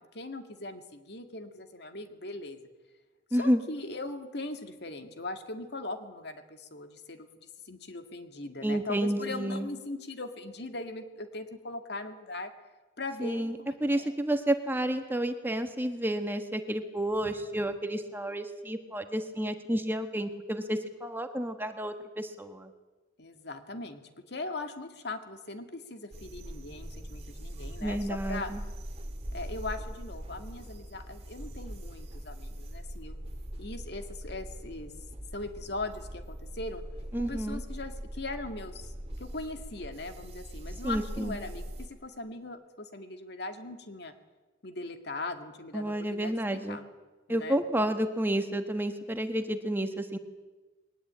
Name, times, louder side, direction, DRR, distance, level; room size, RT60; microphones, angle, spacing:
voice 1, 0.0-2.6 3.4-12.5 13.0-14.1 23.2-28.5 29.3-33.2 33.6-34.9 35.3-36.8 37.2-38.9 39.2-44.1 44.6-46.8 47.3-47.6, left 2 dB, 60° left, 7 dB, 2.1 m, -40 dB
voice 2, 3.3-3.6 8.6-9.7 13.2-22.7 27.8-28.6 37.1-37.6 40.8-41.4 45.7-46.8 47.3-50.2, right 1 dB, 10° right, 7 dB, 1.4 m, -30 dB
sound 1, 26.1-41.9, equal, 35° right, 2.2 m, -41 dB
21.5 x 19.5 x 8.8 m, 1.2 s
head